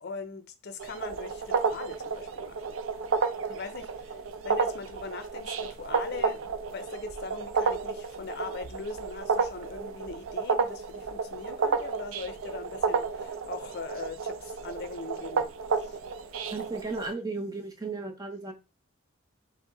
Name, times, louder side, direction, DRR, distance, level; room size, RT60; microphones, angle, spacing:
voice 1, 0.0-2.8 3.5-16.0, left 4 dB, 50° left, 0.6 m, -41 dB
sound 1, 0.8-17.1, right 5 dB, 80° right, 0.5 m, -31 dB
voice 2, 16.5-18.5, right 3 dB, 20° right, 0.7 m, -35 dB
5.1 x 2.1 x 3.8 m
head